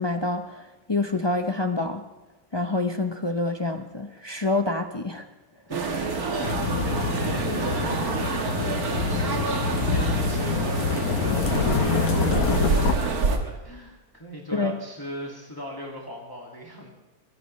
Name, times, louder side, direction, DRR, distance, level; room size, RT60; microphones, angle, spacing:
voice 1, 0.0-2.1 2.5-5.3 14.5-14.8, left 2 dB, 45° left, 6 dB, 0.3 m, -27 dB
voice 2, 5.7-16.9, equal, 15° left, -2 dB, 2.1 m, -40 dB
sound 1, 5.7-13.4, right 4 dB, 75° right, 1.9 m, -27 dB
sound 2, 6.4-12.9, left 5 dB, 75° left, 1.5 m, -26 dB
23.0 x 16.0 x 3.2 m, 1.1 s
omnidirectional pair, 1.6 m